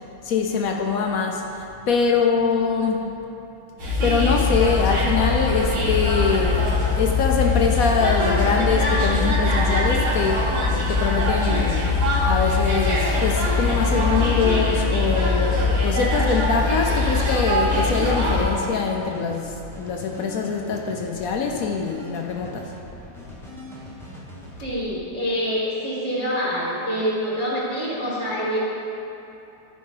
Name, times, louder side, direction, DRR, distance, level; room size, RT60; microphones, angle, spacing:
voice 1, 0.2-1.4 1.8-3.1 4.0-6.7 7.0-11.8 12.3-22.7, left 5 dB, 70° left, 2 dB, 0.8 m, -23 dB
sound 1, 3.8-18.4, left 3 dB, 75° right, 2.4 m, -21 dB
sound 2, 18.0-24.9, left 1 dB, ahead, 0.6 m, -41 dB
voice 2, 24.6-28.6, equal, 20° right, -6 dB, 1.2 m, -26 dB
12.5 x 5.1 x 3.9 m, 2.9 s
omnidirectional pair, 2.1 m